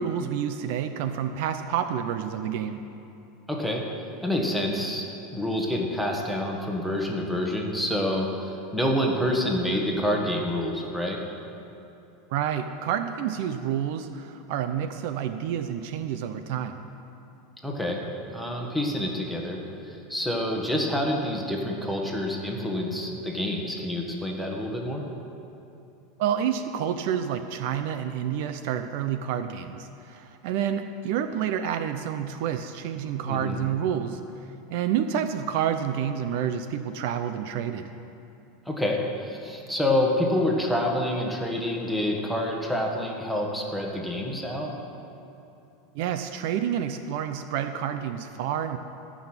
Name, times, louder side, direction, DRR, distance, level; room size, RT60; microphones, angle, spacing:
voice 1, 0.0-2.8 12.3-16.8 26.2-34.2 34.7-37.9 45.9-48.8, right 9 dB, 60° right, 9 dB, 0.6 m, -29 dB
voice 2, 3.5-3.8 4.2-5.0 5.3-11.2 17.6-18.0 18.3-19.6 19.9-25.0 33.3-33.6 38.6-44.7, left 1 dB, ahead, 0 dB, 1.5 m, -27 dB
14.0 x 6.3 x 8.9 m, 2.8 s
supercardioid pair, 150°, 0 cm